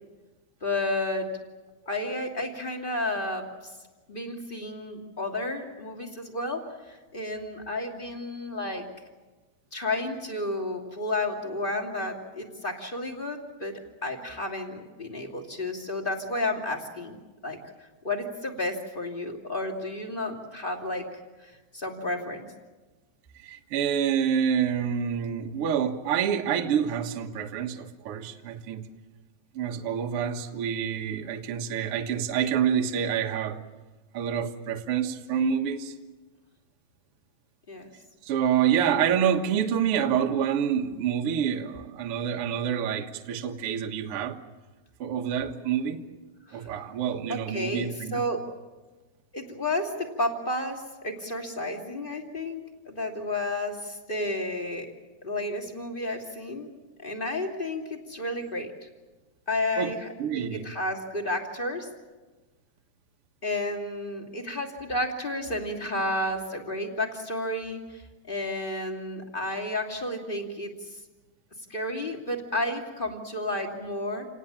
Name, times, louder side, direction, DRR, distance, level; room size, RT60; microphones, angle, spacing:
voice 1, 0.6-1.3 1.9-3.7 4.1-8.9 9.7-17.2 17.4-21.0 21.4-22.5 37.7-37.9 46.5-46.8 47.3-48.4 49.3-54.9 55.2-56.7 57.0-58.7 59.5-61.9 63.4-71.0 71.7-74.3, left 1 dB, 15° left, 2 dB, 2.1 m, -32 dB
voice 2, 23.4-28.8 29.5-33.6 34.1-35.9 38.2-44.4 45.0-46.1 46.5-48.2 59.8-59.9 60.2-60.7, right 8 dB, 55° right, 4 dB, 1.6 m, -27 dB
28.5 x 19.0 x 8.8 m, 1.2 s
omnidirectional pair, 4.6 m